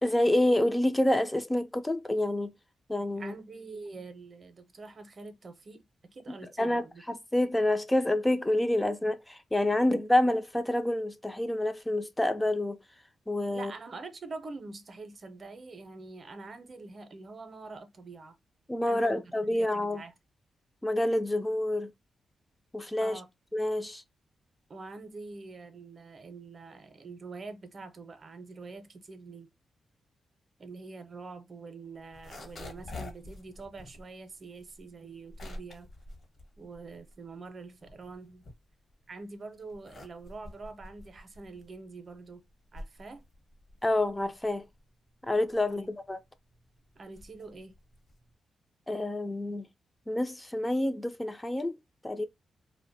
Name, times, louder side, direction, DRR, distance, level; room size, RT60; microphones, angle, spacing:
voice 1, 0.0-2.5 2.9-3.3 6.3-12.8 13.3-13.7 18.7-20.0 20.8-21.9 22.7-23.2 23.5-24.0 43.8-44.6 45.2-46.2 48.9-49.7 50.1-51.8 52.0-52.3, left 1 dB, 15° left, 0.3 m, -28 dB
voice 2, 3.2-5.8 6.1-7.0 9.9-10.3 13.5-18.4 18.9-20.1 23.0-23.3 24.7-29.5 30.6-35.9 36.6-38.5 39.1-42.4 42.7-43.2 45.7-45.9 47.0-47.8, right 3 dB, 45° right, 0.6 m, -45 dB
sound 1, 32.0-37.3 37.6-39.1 39.6-48.3, left 2 dB, 60° left, 0.9 m, -48 dB
2.4 x 2.1 x 2.6 m
cardioid pair, 75°, 0 cm